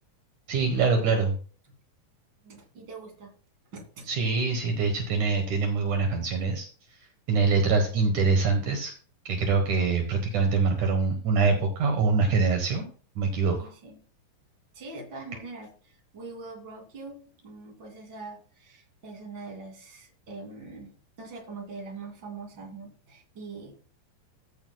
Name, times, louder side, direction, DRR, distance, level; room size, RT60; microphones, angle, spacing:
voice 1, 0.5-1.4 4.1-6.7 7.3-8.9 9.3-12.8 13.2-13.7, right 4 dB, 65° right, 3 dB, 2.7 m, -24 dB
voice 2, 2.4-3.3 3.7-4.1 13.6-14.0 14.7-23.8, right 3 dB, 35° right, 1 dB, 3.2 m, -43 dB
14.5 x 9.0 x 2.3 m, 0.40 s
omnidirectional pair, 3.8 m